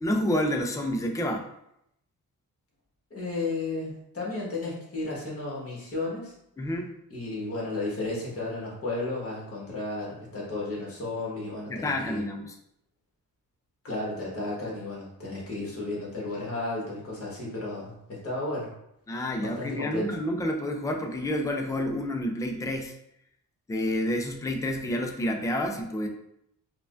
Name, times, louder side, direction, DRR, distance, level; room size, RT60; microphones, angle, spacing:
voice 1, 0.0-1.5 6.6-6.9 11.7-12.5 19.1-22.9 23.7-26.1, left 1 dB, 10° left, 3 dB, 0.3 m, -29 dB
voice 2, 3.1-6.3 7.1-12.2 13.8-18.7 19.4-20.1, left 2 dB, 40° left, -4 dB, 1.3 m, -33 dB
4.6 x 2.2 x 2.4 m, 0.78 s
wide cardioid pair, 140°, 35 cm